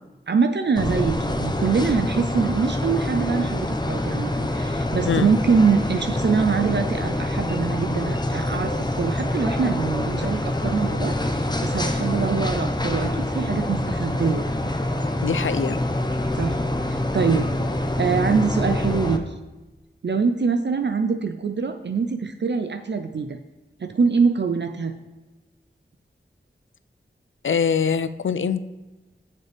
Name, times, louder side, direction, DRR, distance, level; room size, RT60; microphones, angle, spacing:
voice 1, 0.3-14.7 16.4-16.6 16.9-17.5 18.0-19.3 20.0-23.4 23.8-24.9, right 5 dB, 65° right, 8 dB, 0.5 m, -24 dB
sound 1, 0.8-19.2, left 1 dB, 20° left, 0.8 m, -25 dB
voice 2, 15.2-15.8 27.4-28.6, left 6 dB, 80° left, 13 dB, 0.4 m, -23 dB
9.9 x 6.7 x 3.4 m, 1.2 s
wide cardioid pair, 50°, 20 cm